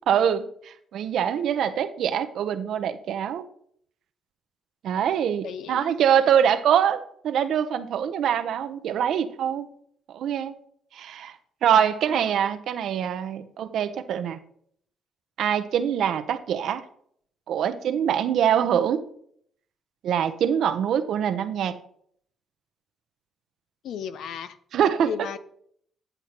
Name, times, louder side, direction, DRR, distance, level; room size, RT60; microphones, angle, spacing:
voice 1, 0.1-3.4 4.8-9.7 10.1-10.5 10.9-14.4 15.4-16.8 17.5-19.0 20.0-21.8 24.7-25.1, right 9 dB, 70° right, 10 dB, 0.7 m, -24 dB
voice 2, 5.4-6.0 12.1-12.3 23.8-24.6 25.0-25.4, left 8 dB, 75° left, 13 dB, 0.6 m, -35 dB
10.0 x 7.9 x 2.9 m, 0.65 s
cardioid pair, 90°, 0 cm